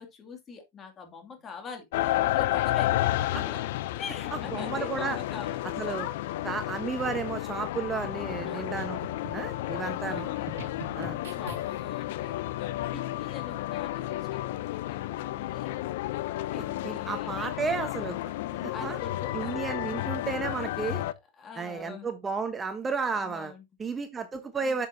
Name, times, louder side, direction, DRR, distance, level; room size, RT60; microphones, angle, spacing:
voice 1, 0.0-1.9 2.2-3.6 4.0-5.7 6.3-6.5 8.4-8.8 10.1-10.4 11.3-15.8 16.5-17.4 18.7-20.2 21.4-22.1 23.1-23.6 24.6-24.8, left 5 dB, 25° left, 2.4 m, -44 dB
sound 1, 1.9-21.1, left 15 dB, 65° left, 0.6 m, -32 dB
voice 2, 4.5-5.2 5.8-6.1 6.4-9.0 9.3-10.3 10.9-11.2 16.8-18.2 18.5-19.0 19.3-21.0 21.6-23.5 23.8-24.9, right 5 dB, 15° right, 1.0 m, -32 dB
sound 2, 8.4-12.0, right 5 dB, 80° right, 1.5 m, -44 dB
8.0 x 7.3 x 2.7 m
hypercardioid pair, 125°, 0 cm